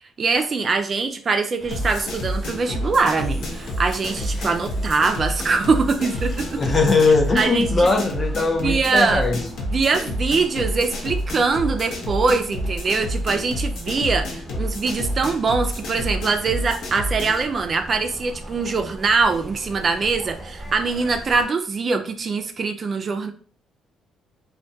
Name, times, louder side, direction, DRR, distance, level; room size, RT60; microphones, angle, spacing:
voice 1, 0.0-6.6 7.4-8.1 8.6-9.3 9.7-23.3, right 4 dB, 40° right, 6 dB, 0.3 m, -23 dB
sound 1, 1.6-21.4, right 1 dB, ahead, 0.9 m, -39 dB
sound 2, 1.7-17.4, equal, 75° left, 0.6 m, -29 dB
Engine / Drill, 3.0-7.5, left 1 dB, 45° left, 0.9 m, -45 dB
voice 2, 6.6-9.5, left 3 dB, 30° left, 4 dB, 0.5 m, -20 dB
2.2 x 2.2 x 2.6 m, 0.44 s
cardioid pair, 85°, 0 cm